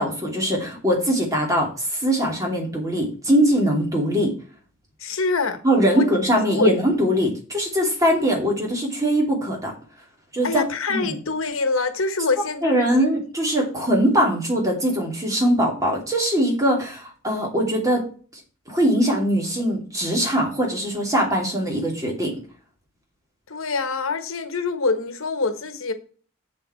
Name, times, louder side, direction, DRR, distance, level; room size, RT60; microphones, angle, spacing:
voice 1, 0.0-4.3 5.6-9.7 10.3-10.6 10.9-11.2 12.6-18.0 18.7-22.3, equal, 15° right, 2.8 m, -21 dB
voice 2, 5.0-5.6 5.9-6.1 6.5-6.7 10.4-13.1 23.5-25.9, left 4 dB, 80° left, 1.2 m, -25 dB
7.5 x 7.4 x 4.4 m
head